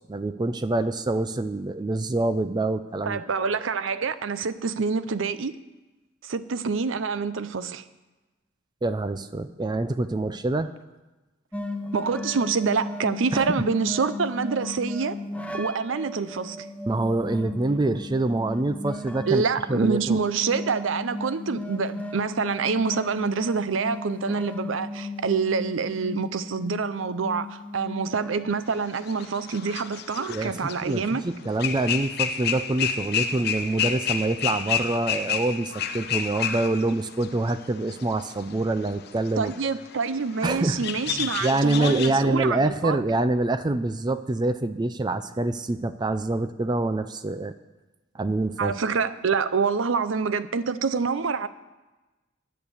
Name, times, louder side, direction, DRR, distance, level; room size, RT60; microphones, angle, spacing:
voice 1, 0.0-3.2 8.8-10.7 13.3-13.6 16.9-19.4 19.7-20.2 30.3-30.5 30.8-39.5 40.4-40.8 41.2-47.5 48.1-48.7, right 2 dB, 20° right, 11 dB, 0.4 m, -26 dB
voice 2, 3.1-5.6 6.2-7.8 11.9-15.2 15.5-16.7 19.3-31.2 39.4-43.0 48.6-51.5, right 5 dB, 75° right, 14 dB, 0.6 m, -26 dB
sound 1, 11.5-29.2, left 2 dB, 5° left, 0.7 m, -36 dB
sound 2, 28.9-31.2 31.6-42.1, left 8 dB, 55° left, 0.7 m, -30 dB
10.5 x 8.5 x 7.1 m, 1.1 s
head